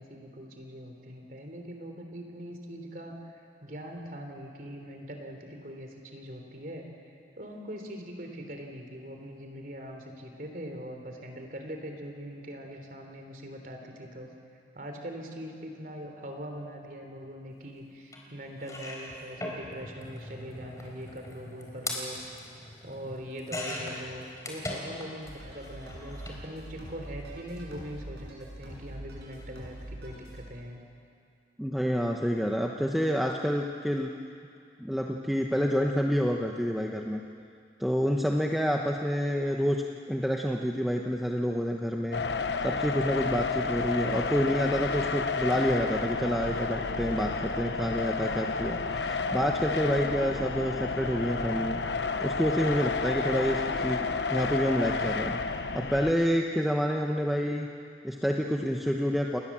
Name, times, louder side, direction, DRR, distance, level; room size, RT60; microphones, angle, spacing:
voice 1, 0.0-14.3 14.7-22.2 22.8-30.8, equal, 50° right, 3 dB, 3.5 m, -42 dB
sound 1, 18.1-18.2 18.6-25.3 25.6-26.4 27.4-27.6 27.8-27.9, left 1 dB, 20° left, 3.9 m, -40 dB
sound 2, 25.2-30.4, right 1 dB, 75° right, 7.6 m, -44 dB
voice 2, 31.6-34.1 34.8-37.2 37.8-42.2 42.6-51.8 52.2-55.4 55.7-57.7 58.0-59.4, equal, ahead, 1 dB, 1.0 m, -28 dB
sound 3, 42.1-56.1, left 4 dB, 80° left, 1.0 m, -31 dB
28.5 x 20.0 x 7.4 m, 2.4 s
head